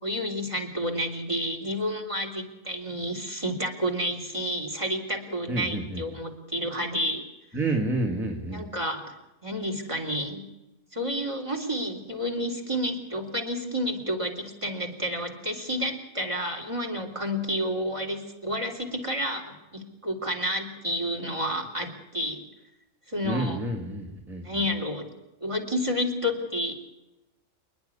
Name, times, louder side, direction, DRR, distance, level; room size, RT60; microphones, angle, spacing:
voice 1, 0.0-7.2 8.5-9.1 9.4-10.4 10.9-22.4 23.1-23.6 24.4-25.1 25.4-26.7, equal, 20° right, 7 dB, 3.4 m, -30 dB
voice 2, 5.5-6.0 7.5-8.7 23.2-24.4, right 2 dB, ahead, 4 dB, 2.2 m, -29 dB
28.0 x 10.5 x 9.8 m, 0.98 s
omnidirectional pair, 1.5 m